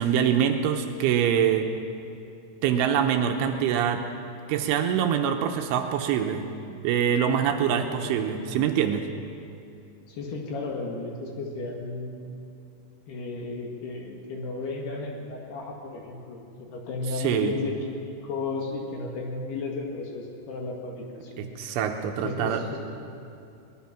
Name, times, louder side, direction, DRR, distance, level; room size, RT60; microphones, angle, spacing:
voice 1, 0.0-1.7 2.6-4.0 4.5-9.1 17.1-17.5 21.4-22.6, right 8 dB, 80° right, 5 dB, 3.2 m, -24 dB
voice 2, 10.1-12.2 13.1-21.5 22.2-22.8, left 3 dB, 60° left, 0 dB, 3.4 m, -34 dB
22.5 x 19.5 x 6.0 m, 2.6 s
omnidirectional pair, 5.9 m